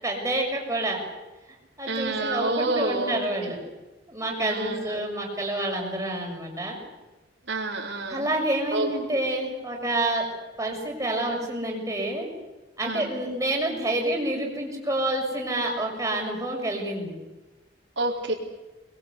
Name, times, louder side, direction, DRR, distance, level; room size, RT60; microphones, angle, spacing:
voice 1, 0.0-1.0 1.8-3.6 4.1-6.8 8.1-12.3 12.8-17.1, right 1 dB, 15° right, 0 dB, 6.5 m, -28 dB
voice 2, 1.9-3.2 4.4-5.0 7.5-8.3 8.7-8.9 12.8-13.1 18.0-18.3, right 2 dB, 75° right, -6 dB, 4.1 m, -28 dB
25.0 x 22.0 x 8.3 m, 1.1 s
head